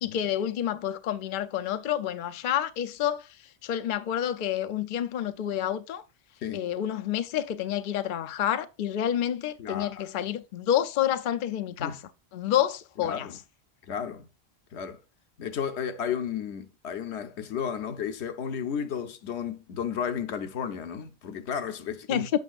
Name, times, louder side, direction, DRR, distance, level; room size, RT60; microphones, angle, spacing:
voice 1, 0.0-3.3 3.6-6.0 6.5-12.0 12.3-13.3 22.1-22.3, left 10 dB, 55° left, 0.7 m, -29 dB
voice 2, 9.6-10.0 11.8-12.0 13.0-13.4 13.9-14.3 14.7-15.0 15.4-22.3, left 7 dB, 85° left, 1.0 m, -33 dB
8.2 x 5.9 x 2.4 m
omnidirectional pair, 1.1 m